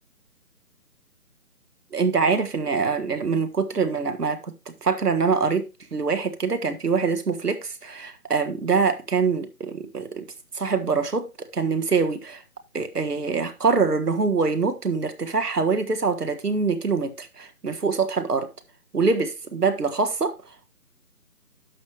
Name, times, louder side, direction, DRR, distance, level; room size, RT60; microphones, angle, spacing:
voice 1, 1.9-10.2 10.5-12.4 12.7-18.5 18.9-20.7, right 5 dB, 80° right, 1.7 m, -24 dB
11.0 x 6.4 x 3.2 m
figure-of-eight pair, 155°, 46 cm